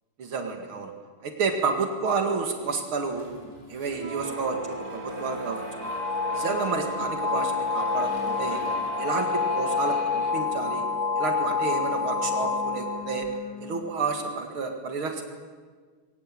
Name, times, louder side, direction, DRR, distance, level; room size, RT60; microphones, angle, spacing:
voice 1, 0.2-0.9 1.2-3.3 3.7-4.6 4.9-5.6 6.3-8.6 9.0-10.8 11.2-13.3 13.6-15.2, right 4 dB, 75° right, 5 dB, 2.9 m, -30 dB
Toilet flush, 3.0-9.5 9.7-11.3, left 1 dB, 15° left, 8.1 m, -49 dB
sound 1, 3.9-14.3, right 1 dB, 45° right, 3.3 m, -39 dB
sound 2, 5.8-13.4, left 5 dB, 40° left, 0.6 m, -28 dB
22.0 x 19.0 x 8.9 m, 1.5 s
omnidirectional pair, 2.3 m